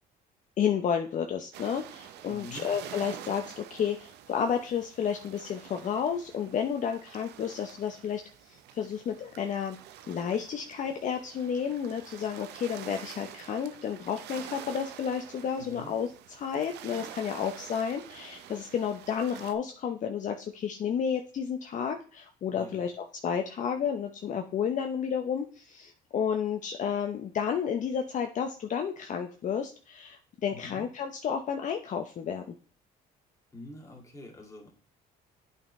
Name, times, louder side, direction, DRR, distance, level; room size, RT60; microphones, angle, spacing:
voice 1, 0.6-9.8 10.1-32.6, left 7 dB, 50° left, 4 dB, 0.7 m, -31 dB
sound 1, 1.5-19.5, right 11 dB, 80° right, 0.7 m, -47 dB
voice 2, 2.3-2.7 15.6-15.9 22.5-22.8 30.5-30.9 33.5-34.7, left 2 dB, 20° left, 0 dB, 2.3 m, -45 dB
8.7 x 5.3 x 3.2 m, 0.40 s
cardioid pair, 110°, 17 cm